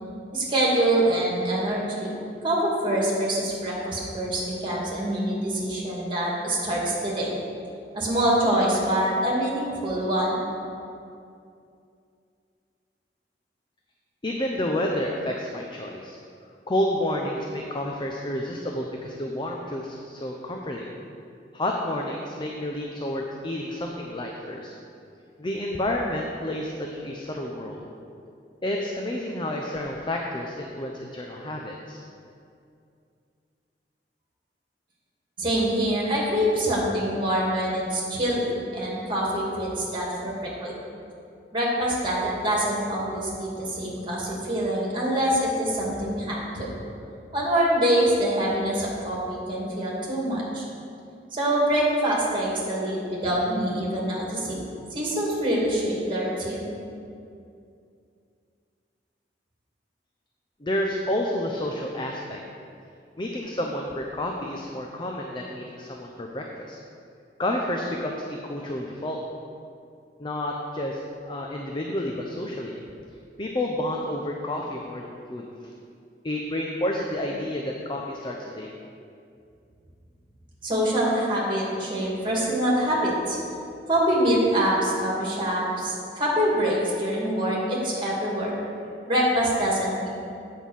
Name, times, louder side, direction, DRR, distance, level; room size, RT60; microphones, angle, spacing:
voice 1, 0.3-2.1 2.4-7.3 7.9-10.4 35.4-40.8 41.5-46.7 47.3-50.7 51.3-54.5 54.9-56.7 80.6-83.4 83.9-88.5 89.1-90.1, right 1 dB, 30° right, -4 dB, 2.5 m, -25 dB
voice 2, 14.2-16.2 16.7-20.9 21.5-24.7 25.4-27.9 28.6-32.0 60.6-62.4 63.2-66.8 67.4-69.2 70.2-72.8 73.4-75.5 76.2-78.7, left 1 dB, 25° left, 0 dB, 0.6 m, -30 dB
8.4 x 5.5 x 7.4 m, 2.5 s
head